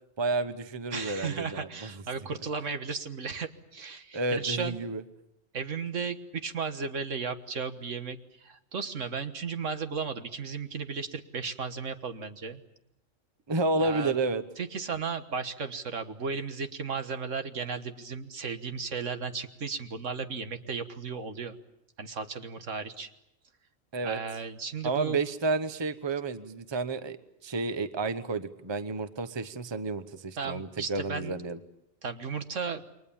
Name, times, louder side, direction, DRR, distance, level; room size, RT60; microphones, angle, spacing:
voice 1, 0.2-1.9 4.1-5.0 13.5-14.4 23.9-24.2 24.8-27.2 27.4-31.6, right 3 dB, 25° right, 11 dB, 0.9 m, -31 dB
voice 2, 0.9-4.8 5.5-12.6 13.8-14.1 14.6-21.6 22.0-23.1 24.0-25.2 30.4-31.4 32.0-32.8, right 5 dB, 70° right, 8 dB, 1.8 m, -35 dB
29.0 x 23.5 x 7.1 m, 0.84 s
omnidirectional pair, 1.3 m